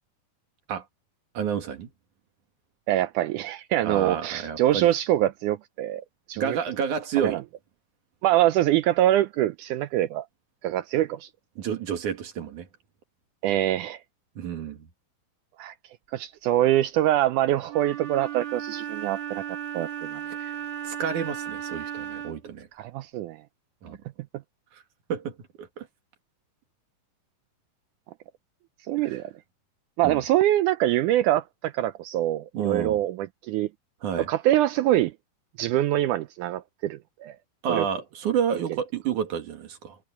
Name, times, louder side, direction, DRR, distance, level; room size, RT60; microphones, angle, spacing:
voice 1, 1.3-1.9 3.8-4.9 6.4-7.4 11.6-12.7 14.4-14.9 20.4-20.6 20.8-22.7 23.8-24.0 24.7-24.8 25.1-25.9 29.0-29.2 30.0-30.2 32.5-33.0 34.0-34.3 37.6-40.0, right 8 dB, 60° right, 3.2 m, -30 dB
voice 2, 2.9-6.6 7.2-7.4 8.2-10.3 10.6-11.3 13.4-14.0 15.6-15.7 16.1-19.4 19.7-20.2 22.8-23.4 28.9-29.3 30.0-33.7 34.2-35.1 35.6-37.4 37.7-37.9, right 13 dB, 85° right, 1.8 m, -24 dB
Wind instrument woodwind instrument, 17.7-22.5, right 10 dB, 40° right, 1.6 m, -35 dB
omnidirectional pair, 4.1 m